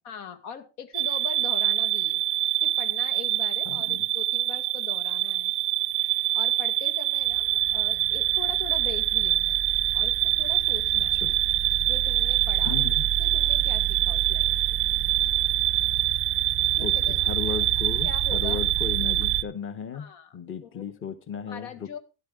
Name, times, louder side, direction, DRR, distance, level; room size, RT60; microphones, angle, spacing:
voice 1, 0.0-2.2 2.6-5.5 6.3-9.6 9.9-11.2 11.8-12.9 13.2-14.8 16.8-17.2 17.4-17.6 18.0-18.6 19.9-20.9 21.3-22.0, left 7 dB, 80° left, 8 dB, 2.1 m, -41 dB
sound 1, 0.9-19.4, right 13 dB, 25° right, 0.5 m, -25 dB
voice 2, 3.6-4.1 11.2-11.4 12.6-13.1 16.8-20.1 20.3-22.0, left 7 dB, 25° left, 11 dB, 1.0 m, -35 dB
13.0 x 11.0 x 3.6 m, 0.30 s
cardioid pair, 140°, 48 cm